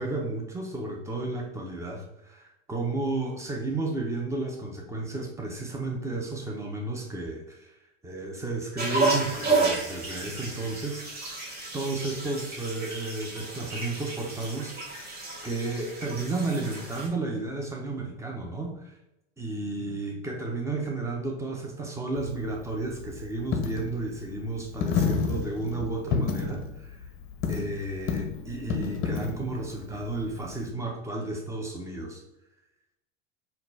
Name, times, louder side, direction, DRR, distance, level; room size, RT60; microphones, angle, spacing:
voice 1, 0.0-7.7 8.0-11.0 11.7-14.8 15.4-18.9 19.4-27.0 27.5-32.2, right 2 dB, 10° right, 0 dB, 1.1 m, -32 dB
sound 1, 8.8-17.1, right 3 dB, 25° right, 1.5 m, -31 dB
Coin (dropping), 22.2-30.7, left 5 dB, 35° left, 0.8 m, -31 dB
4.2 x 2.7 x 4.1 m, 0.87 s
hypercardioid pair, 95°, 35 cm